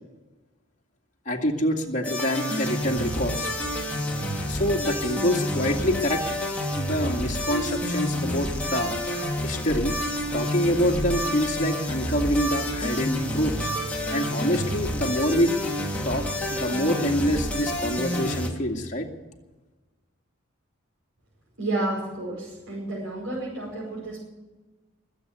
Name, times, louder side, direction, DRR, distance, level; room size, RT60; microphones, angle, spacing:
voice 1, 1.3-3.5 4.5-6.2 6.7-8.9 9.4-9.9 10.3-13.7 14.1-15.5 16.0-16.2 16.5-19.1, equal, 35° left, 0 dB, 2.3 m, -26 dB
sound 1, 2.0-18.5, equal, 5° left, 2.7 m, -29 dB
voice 2, 21.6-24.2, right 2 dB, 80° right, -6 dB, 5.4 m, -30 dB
21.5 x 8.3 x 8.1 m, 1.2 s
head